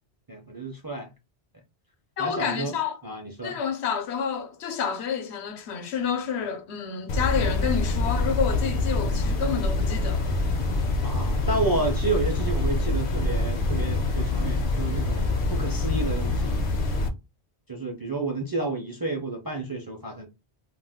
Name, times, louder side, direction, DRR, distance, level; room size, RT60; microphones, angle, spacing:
voice 1, 0.3-1.1 2.2-2.7 3.0-3.6 11.0-16.7 17.7-20.3, right 2 dB, 35° right, 0.4 m, -30 dB
voice 2, 2.2-3.0 3.4-10.3, left 6 dB, 85° left, 0.9 m, -29 dB
sound 1, 7.1-17.1, left 2 dB, 60° left, 0.7 m, -25 dB
2.4 x 2.2 x 3.4 m
omnidirectional pair, 1.1 m